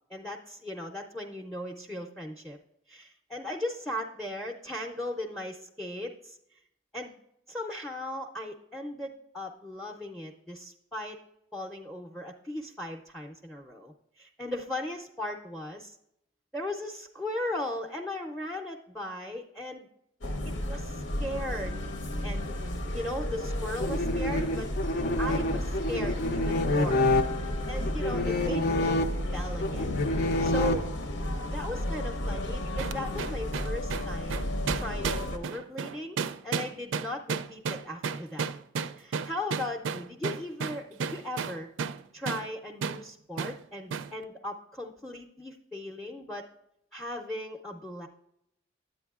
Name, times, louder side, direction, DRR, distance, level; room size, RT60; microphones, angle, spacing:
voice 1, 0.1-2.6 2.9-6.6 6.9-7.2 7.5-11.2 11.5-16.0 16.5-19.9 20.6-21.8 22.2-22.5 22.9-24.7 25.2-27.1 27.4-29.0 29.3-30.0 30.4-30.9 31.5-38.5 39.0-41.7 42.1-46.5 46.9-48.1, left 1 dB, 5° left, 2 dB, 0.5 m, -37 dB
sound 1, 20.2-35.4, left 1 dB, 85° left, 1.0 m, -33 dB
sound 2, 23.8-31.3, left 2 dB, 55° left, 0.5 m, -28 dB
sound 3, 32.8-42.0 42.3-42.5 42.8-43.0 43.4-43.6 43.9-44.1, right 6 dB, 80° right, 0.4 m, -33 dB
10.0 x 8.5 x 2.4 m, 0.78 s
head